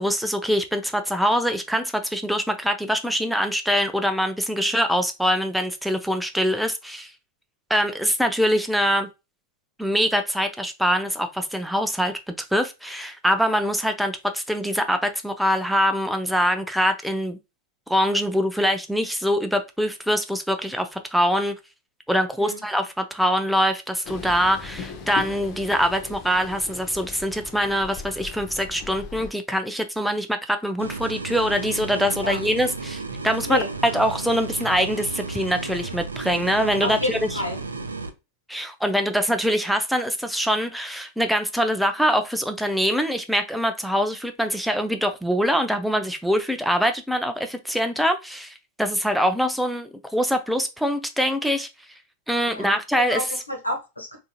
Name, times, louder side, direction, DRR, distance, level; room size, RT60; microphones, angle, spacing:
voice 1, 0.0-7.1 7.7-9.1 9.8-17.4 17.9-21.6 22.1-37.4 38.5-51.7 52.3-53.2, equal, ahead, 0.4 m, -24 dB
Train, 24.0-29.3, left 5 dB, 40° left, 0.7 m, -38 dB
sound 1, 30.8-38.1, right 3 dB, 75° right, 0.4 m, -33 dB
voice 2, 36.8-37.6 52.5-52.7 53.1-54.2, left 1 dB, 85° left, 1.0 m, -29 dB
3.7 x 2.6 x 2.3 m
figure-of-eight pair, 90°, 0 cm